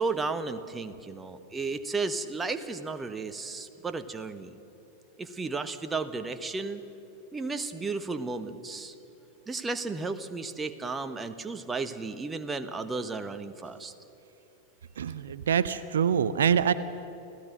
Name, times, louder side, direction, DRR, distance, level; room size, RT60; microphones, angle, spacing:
voice 1, 0.0-4.5 5.2-6.8 7.3-8.9 9.5-13.9, right 3 dB, 15° right, 9 dB, 1.2 m, -33 dB
voice 2, 15.0-16.7, right 8 dB, 65° right, 14 dB, 0.6 m, -25 dB
29.0 x 16.5 x 6.5 m, 3.0 s
figure-of-eight pair, 90°, 0 cm